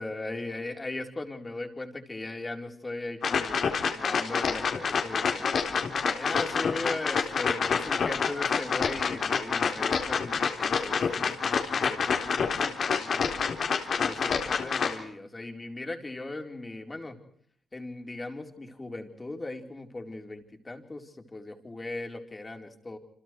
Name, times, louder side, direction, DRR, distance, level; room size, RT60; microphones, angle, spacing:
voice 1, 0.0-5.5 6.0-13.3 14.0-17.2 17.7-23.0, left 2 dB, 20° left, 4 dB, 4.3 m, -38 dB
sound 1, 3.2-15.0, left 6 dB, 55° left, 4.0 m, -28 dB
29.0 x 26.5 x 4.7 m, 0.63 s
cardioid pair, 105°, 0 cm